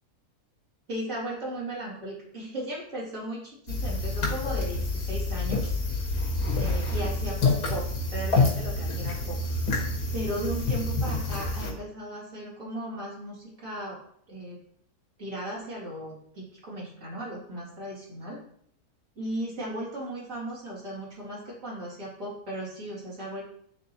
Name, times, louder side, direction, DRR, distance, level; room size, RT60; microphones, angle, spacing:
voice 1, 0.9-5.7 6.5-9.4 10.1-14.0 14.3-14.6 15.2-18.4 19.2-23.4, right 1 dB, 55° right, -6 dB, 2.8 m, -36 dB
sound 1, 3.7-11.7, left 3 dB, 75° left, 2.0 m, -27 dB
9.4 x 3.6 x 2.9 m, 0.69 s
omnidirectional pair, 1.7 m